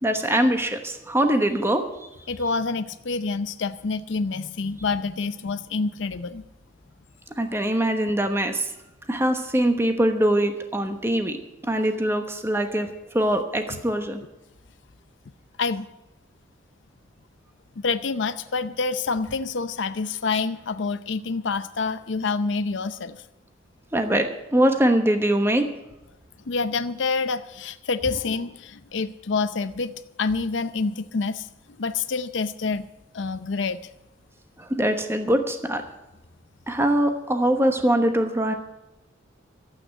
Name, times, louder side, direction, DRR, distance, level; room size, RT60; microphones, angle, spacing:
voice 1, 0.0-1.9 7.4-8.7 9.1-11.4 11.6-14.2 23.9-25.7 34.6-35.8 36.7-38.5, right 1 dB, 15° right, 6 dB, 1.1 m, -22 dB
voice 2, 2.3-6.4 13.7-13.8 15.6-15.9 17.8-23.2 26.5-29.9 30.2-31.5 31.8-32.9 33.1-33.8, left 4 dB, 70° left, 11 dB, 0.6 m, -27 dB
13.0 x 8.6 x 8.8 m, 0.94 s
head